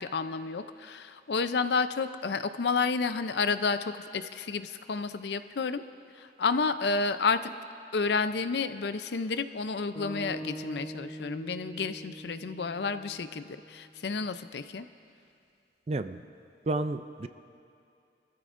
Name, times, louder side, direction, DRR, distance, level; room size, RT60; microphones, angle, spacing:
voice 1, 0.0-5.8 6.2-7.6 7.9-14.9, left 4 dB, 70° left, 11 dB, 0.5 m, -30 dB
sound 1, 9.9-14.2, right 1 dB, 5° left, 3.2 m, -43 dB
voice 2, 15.9-16.2 16.7-17.3, right 2 dB, 35° right, 10 dB, 0.4 m, -31 dB
25.0 x 14.5 x 2.6 m, 2.5 s
head